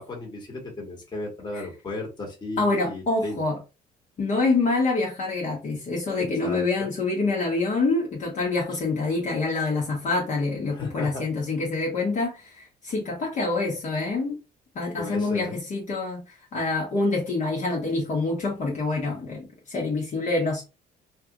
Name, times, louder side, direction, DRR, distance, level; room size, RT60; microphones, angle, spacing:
voice 1, 0.0-3.4 6.2-6.9 10.7-11.3 15.0-15.5, left 2 dB, 25° left, 1.5 m, -35 dB
voice 2, 2.6-3.6 4.2-14.4 14.7-20.6, left 3 dB, 45° left, 1.3 m, -26 dB
3.2 x 2.5 x 3.0 m
cardioid pair, 110°, 17 cm